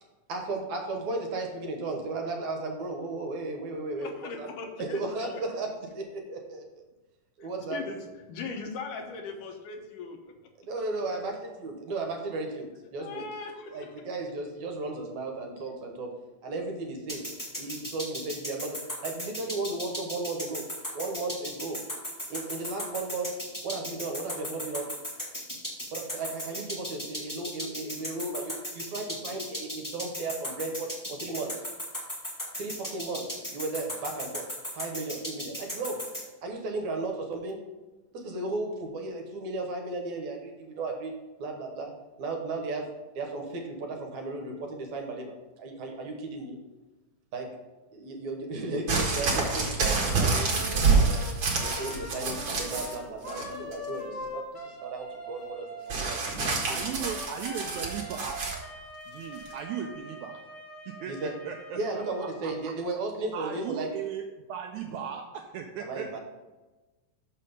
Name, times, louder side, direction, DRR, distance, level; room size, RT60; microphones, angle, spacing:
voice 1, 0.3-4.5 4.8-5.7 5.9-6.6 7.4-7.8 10.6-11.3 11.6-13.3 13.7-16.1 16.4-17.2 17.6-18.8 19.0-20.6 20.9-21.8 22.3-23.3 23.6-24.9 25.9-31.5 32.6-33.2 33.5-34.5 34.7-36.0 36.4-37.6 38.1-41.1 41.4-41.9 42.2-42.9 43.1-46.6 47.3-47.5 47.9-51.2 51.6-56.8 61.1-61.3 61.8-63.9 65.8-66.2, right 3 dB, 65° right, 2 dB, 2.3 m, -35 dB
voice 2, 4.0-5.4 7.7-8.0 8.3-10.3 13.0-13.9, left 4 dB, 75° left, 4 dB, 2.4 m, -39 dB
sound 1, 17.1-36.2, equal, 10° left, 0.9 m, -36 dB
sound 2, 48.9-53.0 53.3-53.9 55.9-58.6 59.5-59.6, right 4 dB, 45° right, 2.0 m, -27 dB
Wind instrument woodwind instrument, 50.4-62.9, equal, 30° left, 1.3 m, -42 dB
voice 3, 56.7-58.4 59.1-60.4 60.9-62.7 63.3-66.2, right 8 dB, 85° right, 4 dB, 1.7 m, -37 dB
6.7 x 6.2 x 5.2 m, 1.1 s
omnidirectional pair, 3.9 m